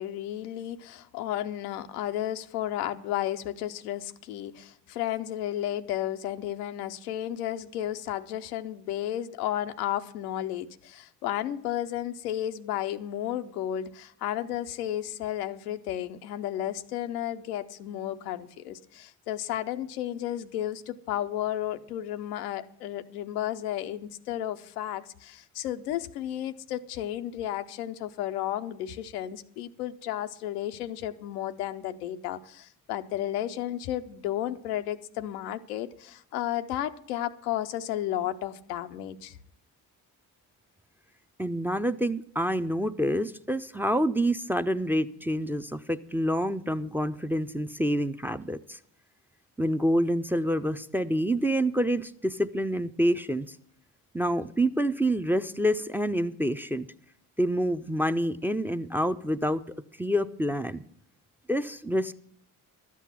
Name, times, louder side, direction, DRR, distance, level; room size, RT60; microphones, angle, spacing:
voice 1, 0.0-39.4, left 12 dB, 90° left, 0.6 m, -33 dB
voice 2, 41.4-48.8 49.6-53.5 54.1-56.9 57.4-59.6 60.0-60.8 61.5-62.1, equal, 5° right, 0.5 m, -27 dB
12.5 x 8.3 x 5.8 m
hypercardioid pair, 45°, 45 cm